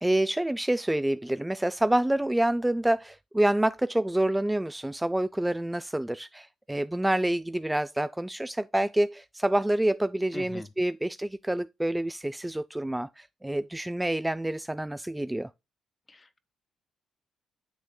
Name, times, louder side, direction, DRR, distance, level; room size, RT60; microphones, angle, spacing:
voice 1, 0.0-15.5, right 1 dB, 10° right, 0.4 m, -27 dB
voice 2, 10.3-10.7 16.1-16.4, left 3 dB, 25° left, 1.3 m, -42 dB
10.0 x 6.3 x 2.2 m
cardioid pair, 90°, 0 cm